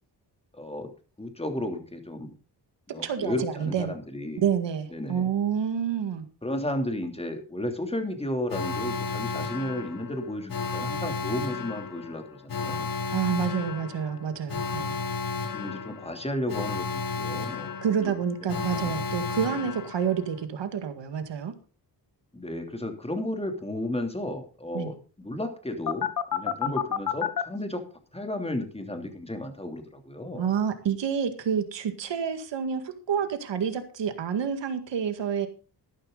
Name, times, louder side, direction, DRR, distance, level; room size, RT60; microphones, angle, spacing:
voice 1, 0.5-0.9 1.2-2.3 2.9-4.4 4.9-5.3 6.4-12.9 15.5-18.1 18.7-19.1 22.3-27.8 28.1-30.5, left 1 dB, 15° left, 5 dB, 3.1 m, -33 dB
voice 2, 3.0-3.9 4.4-6.3 13.1-14.9 17.8-21.5 24.7-24.9 26.6-26.7 30.4-35.5, right 7 dB, 80° right, 8 dB, 2.0 m, -28 dB
Alarm, 8.5-20.4 25.9-27.4, left 6 dB, 50° left, 1.3 m, -32 dB
13.5 x 11.5 x 4.0 m, 0.35 s
cardioid pair, 95°, 42 cm